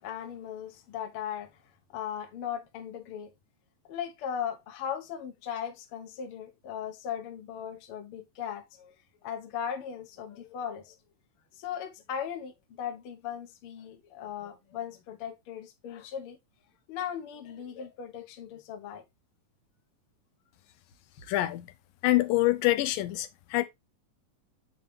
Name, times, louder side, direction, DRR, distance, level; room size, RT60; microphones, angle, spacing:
voice 1, 0.0-1.5 1.9-3.3 3.9-8.9 9.2-10.9 11.6-16.4 16.9-19.0, left 8 dB, 60° left, 1.6 m, -38 dB
voice 2, 21.3-21.7 22.0-23.6, left 17 dB, 90° left, 2.5 m, -25 dB
8.8 x 4.0 x 3.3 m
omnidirectional pair, 3.9 m